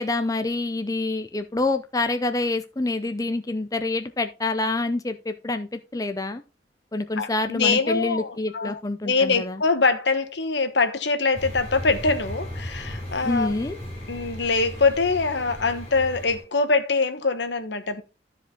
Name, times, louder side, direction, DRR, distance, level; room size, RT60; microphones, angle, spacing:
voice 1, 0.0-6.4 6.9-9.6 13.2-13.7, left 2 dB, 20° left, 0.5 m, -27 dB
voice 2, 7.2-8.8 9.0-13.5 14.1-18.0, left 4 dB, 75° left, 1.2 m, -23 dB
sound 1, 11.3-16.4, left 1 dB, 35° left, 5.5 m, -36 dB
13.0 x 5.1 x 3.8 m
head